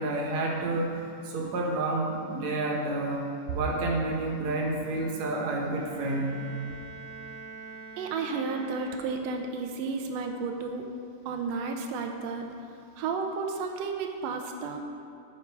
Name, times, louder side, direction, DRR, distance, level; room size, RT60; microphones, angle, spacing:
voice 1, 0.0-3.2 3.5-6.3, right 2 dB, 65° right, 0 dB, 2.2 m, -29 dB
Bowed string instrument, 5.7-9.5, right 4 dB, 65° left, 3.6 m, -45 dB
voice 2, 8.0-10.9 11.2-12.4 13.0-14.8, right 4 dB, 85° right, 3 dB, 1.5 m, -32 dB
12.0 x 5.2 x 4.6 m, 2.6 s
omnidirectional pair, 3.7 m